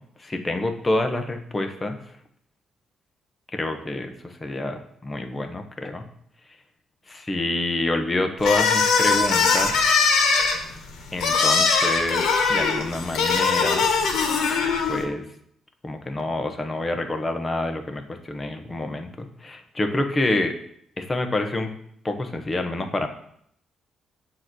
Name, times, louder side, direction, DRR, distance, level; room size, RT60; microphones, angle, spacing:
voice 1, 0.2-2.0 3.5-6.1 7.1-9.8 11.1-13.8 14.9-15.2 15.8-20.5 21.0-21.7 22.0-23.1, left 2 dB, 25° left, 5 dB, 1.0 m, -27 dB
sound 1, 8.4-15.0, left 5 dB, 80° left, 1.2 m, -21 dB
7.6 x 3.0 x 6.1 m, 0.68 s
cardioid pair, 90°, 0 cm